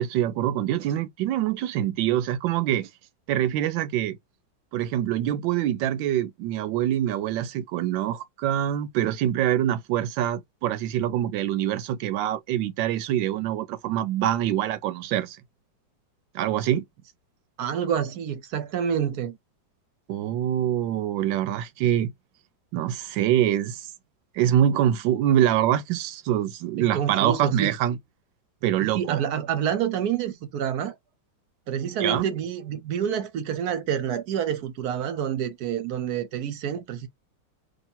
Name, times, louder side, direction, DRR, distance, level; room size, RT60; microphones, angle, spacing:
voice 1, 0.0-2.9 3.3-4.2 4.7-15.4 16.3-16.8 20.1-22.1 22.7-23.9 24.3-28.0 28.6-29.2 32.0-32.3, right 11 dB, 85° right, 1.3 m, -25 dB
voice 2, 17.6-19.4 26.8-27.7 28.8-30.9 31.7-37.1, right 8 dB, 65° right, 1.1 m, -28 dB
2.9 x 2.8 x 4.2 m
omnidirectional pair, 2.0 m